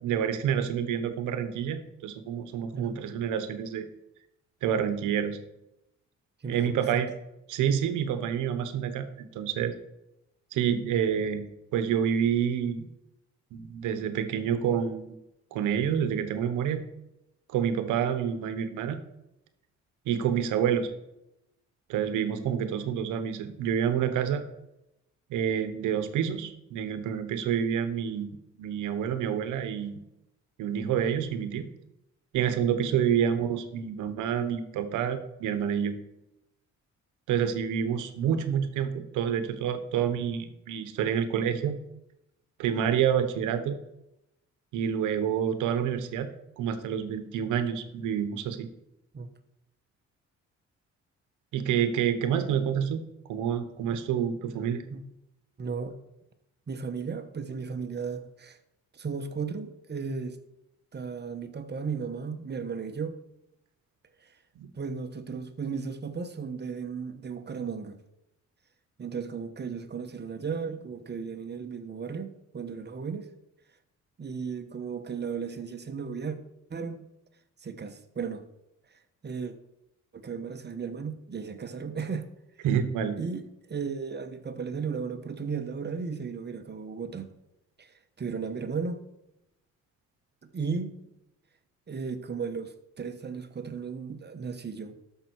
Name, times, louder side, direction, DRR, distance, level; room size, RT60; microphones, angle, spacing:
voice 1, 0.0-3.9 4.6-5.4 6.5-7.1 7.5-9.7 10.5-12.9 13.5-15.1 15.5-16.9 17.5-19.0 20.1-20.9 21.9-24.4 25.3-30.0 30.6-31.7 32.3-36.0 37.3-41.8 42.6-43.8 44.7-46.3 46.6-48.7 51.5-54.8 64.6-64.7 82.6-83.2, right 8 dB, 90° right, 11 dB, 1.0 m, -28 dB
voice 2, 2.7-3.1 6.4-7.0 33.1-33.2 49.1-49.3 54.9-55.0 55.6-55.9 56.7-58.6 58.9-60.4 60.9-63.2 64.2-64.4 64.7-68.0 69.0-73.3 74.2-76.4 76.7-77.1 77.6-78.4 78.9-79.5 80.1-82.3 83.2-87.3 87.8-89.0 90.5-90.9 91.9-95.0, right 5 dB, 35° right, 8 dB, 1.1 m, -35 dB
13.0 x 5.7 x 4.6 m, 0.87 s
cardioid pair, 90°, 30 cm